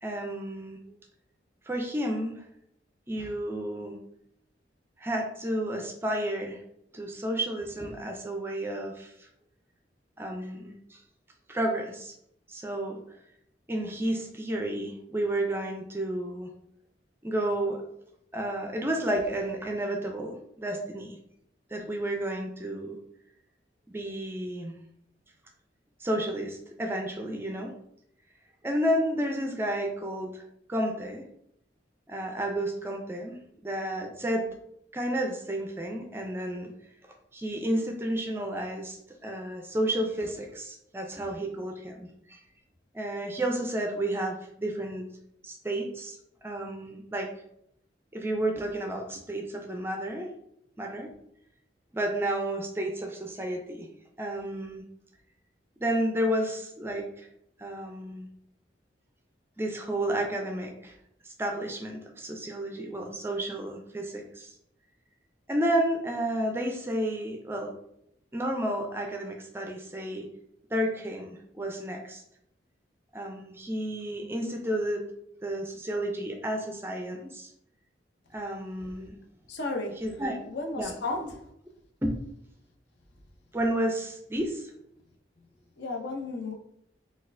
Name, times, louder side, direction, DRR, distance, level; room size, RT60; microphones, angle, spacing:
voice 1, 0.0-0.8 1.7-2.3 3.1-4.0 5.0-6.6 6.9-9.3 10.2-11.0 11.5-12.1 12.5-13.0 13.7-16.5 17.2-17.8 18.3-21.2 21.7-23.0 23.9-24.8 26.0-27.7 28.6-30.4 30.7-31.2 32.1-34.5 34.9-36.7 37.3-39.0 39.2-42.4 42.9-45.1 45.4-46.2 46.4-47.3 48.1-50.3 50.8-51.1 51.9-53.9 54.2-54.8 55.8-57.3 57.6-58.3 59.6-61.0 61.2-64.5 65.5-67.7 68.3-70.3 70.7-72.2 73.1-75.1 75.4-77.5 78.3-79.2 80.0-80.4 80.8-81.3 82.0-82.2 83.5-84.7, right 1 dB, 15° right, 0.4 m, -31 dB
voice 2, 79.5-80.0 80.5-81.5 85.8-86.5, left 2 dB, 65° left, 0.6 m, -33 dB
4.0 x 2.4 x 2.5 m
head